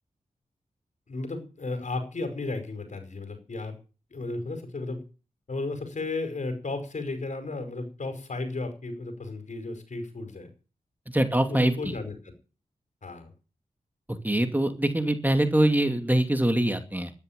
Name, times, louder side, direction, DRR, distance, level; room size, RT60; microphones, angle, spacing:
voice 1, 1.1-3.8 4.1-5.0 5.5-10.5 11.3-12.3 13.0-13.3, left 3 dB, 60° left, 8 dB, 5.2 m, -34 dB
voice 2, 11.1-11.7 14.2-17.1, right 1 dB, 10° right, 7 dB, 2.6 m, -23 dB
12.5 x 10.5 x 9.4 m, 0.35 s
cardioid pair, 55°, 14 cm